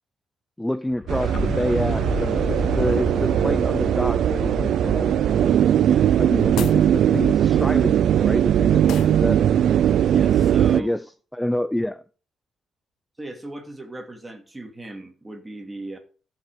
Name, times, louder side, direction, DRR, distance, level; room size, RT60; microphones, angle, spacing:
voice 1, 0.6-5.6 6.2-9.4 10.7-11.1 11.3-12.0, left 1 dB, 5° left, 0.5 m, -28 dB
sound 1, 0.9-6.7, left 3 dB, 55° left, 5.2 m, -32 dB
sound 2, 1.1-10.8, right 10 dB, 70° right, 0.4 m, -19 dB
sound 3, 6.4-6.9 8.9-9.2, left 11 dB, 75° left, 0.6 m, -33 dB
voice 2, 10.1-11.0 13.2-16.0, right 2 dB, 15° right, 2.5 m, -37 dB
14.5 x 5.9 x 5.0 m
cardioid pair, 90°, 0 cm